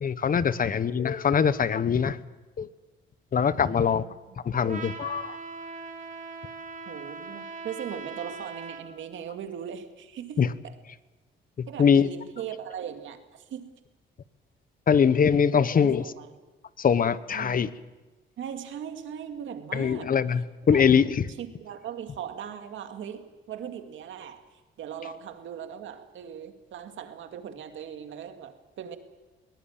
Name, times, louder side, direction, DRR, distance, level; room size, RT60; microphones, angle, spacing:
voice 1, 0.0-2.2 2.6-2.7 3.3-4.0 4.4-5.4 10.4-10.5 11.6-12.1 14.9-16.0 16.8-17.7 19.7-21.2, left 7 dB, 45° left, 15 dB, 1.2 m, -22 dB
voice 2, 3.6-4.1 6.9-10.7 11.7-13.7 15.8-16.3 17.3-17.6 18.4-20.1 20.7-20.8 21.4-29.0, right 8 dB, 75° right, 7 dB, 2.3 m, -39 dB
Trumpet, 4.7-8.9, right 4 dB, 40° right, 3.0 m, -40 dB
22.0 x 18.5 x 8.8 m, 1.2 s
cardioid pair, 90°, 20 cm